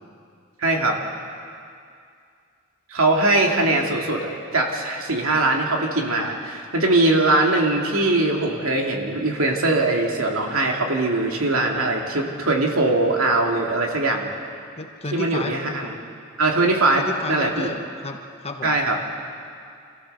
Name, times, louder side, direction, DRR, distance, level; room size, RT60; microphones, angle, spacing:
voice 1, 0.6-1.0 2.9-14.3 15.1-15.9 16.4-17.7 18.6-19.0, right 2 dB, 75° right, 1 dB, 2.6 m, -21 dB
voice 2, 3.6-3.9 14.8-15.6 17.0-18.8, left 2 dB, 30° left, 4 dB, 1.3 m, -32 dB
27.0 x 15.0 x 6.8 m, 2.4 s
head